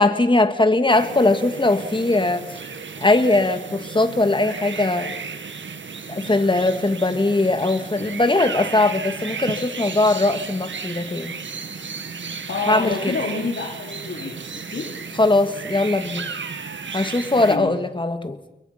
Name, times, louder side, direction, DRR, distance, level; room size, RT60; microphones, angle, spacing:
voice 1, 0.0-2.4 3.0-5.1 6.1-11.3 12.7-13.2 15.2-16.3 16.9-18.4, left 2 dB, 25° left, 8 dB, 2.1 m, -20 dB
sound 1, 0.9-17.6, right 5 dB, 80° right, 1.9 m, -34 dB
voice 2, 12.5-14.9 17.4-17.7, left 4 dB, 80° left, -2 dB, 3.8 m, -28 dB
29.5 x 22.0 x 5.9 m, 0.93 s
wide cardioid pair, 70°, 19 cm